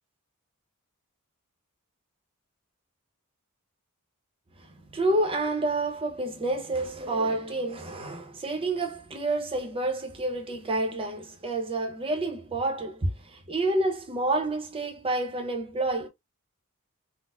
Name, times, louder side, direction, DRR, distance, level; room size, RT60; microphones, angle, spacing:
voice 1, 4.6-16.1, right 2 dB, 25° right, 0.7 m, -29 dB
4.1 x 2.1 x 2.3 m
head